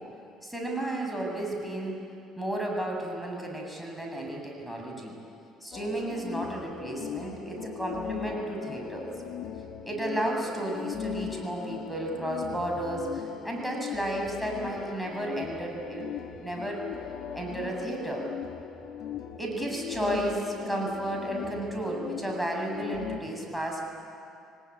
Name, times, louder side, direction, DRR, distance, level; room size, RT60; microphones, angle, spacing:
voice 1, 0.4-2.0 2.4-5.1 5.6-9.1 9.8-16.1 16.4-16.8 17.3-18.3 19.4-23.8, right 1 dB, ahead, -1 dB, 7.6 m, -33 dB
sound 1, 5.7-23.2, left 8 dB, 55° left, 1.8 m, -39 dB
23.5 x 19.0 x 9.9 m, 2.6 s
hypercardioid pair, 55°, 0 cm